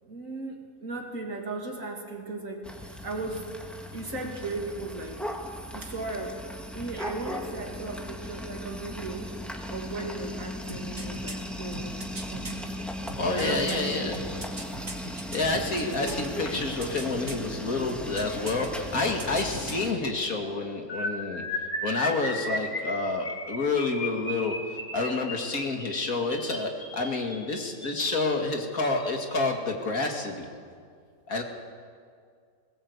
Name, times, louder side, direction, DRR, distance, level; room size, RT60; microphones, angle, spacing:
voice 1, 0.0-3.5 3.9-5.2 5.7-6.4 6.7-9.3 9.7-12.9 13.4-14.3 15.8-16.1, right 2 dB, 50° right, 2 dB, 2.8 m, -37 dB
sound 1, 2.6-19.9, equal, ahead, 1.6 m, -37 dB
sound 2, 10.7-12.5 13.1-16.3 16.5-17.5 17.9-18.7 18.9-19.9 20.2-20.3, right 2 dB, 35° right, 2.4 m, -40 dB
voice 2, 13.2-14.2 15.3-21.4 21.8-24.5 24.9-30.5 31.3-31.4, left 3 dB, 55° left, 2 dB, 2.5 m, -28 dB
sound 3, 20.9-28.1 28.8-29.1 29.3-29.6 29.9-30.1, left 1 dB, 30° left, 2.7 m, -35 dB
21.0 x 18.0 x 8.1 m, 2.2 s
omnidirectional pair, 1.8 m